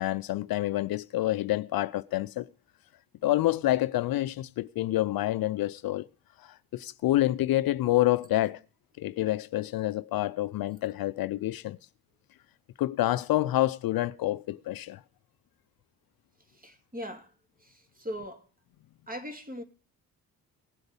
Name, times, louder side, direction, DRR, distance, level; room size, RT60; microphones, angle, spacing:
voice 1, 0.0-2.5 3.2-6.1 6.4-8.6 9.0-11.8 12.8-15.0, left 15 dB, 60° left, 0.6 m, -28 dB
voice 2, 16.5-17.3 17.6-18.4 19.1-19.6, equal, 20° right, 2.7 m, -39 dB
18.0 x 7.8 x 5.4 m
hypercardioid pair, 50°, 41 cm